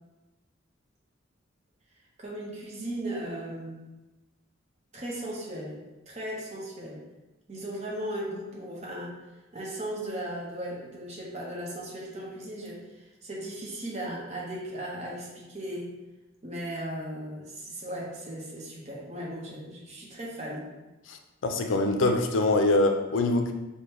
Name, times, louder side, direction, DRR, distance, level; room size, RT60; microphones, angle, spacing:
voice 1, 2.2-3.8 4.9-7.0 7.5-9.2 9.5-15.9 16.4-20.7, right 1 dB, 35° right, -4 dB, 0.9 m, -37 dB
voice 2, 21.1-23.5, left 2 dB, 70° left, 5 dB, 0.4 m, -24 dB
4.9 x 2.2 x 3.0 m, 1.1 s
head